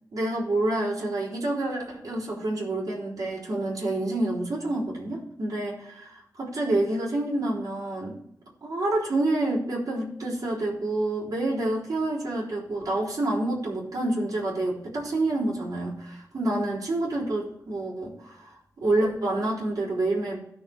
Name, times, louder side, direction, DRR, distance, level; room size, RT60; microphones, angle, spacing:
voice 1, 0.1-8.2 8.6-20.4, right 2 dB, 60° right, -7 dB, 3.9 m, -28 dB
17.0 x 6.4 x 3.6 m, 0.76 s
wide cardioid pair, 150°, 7 cm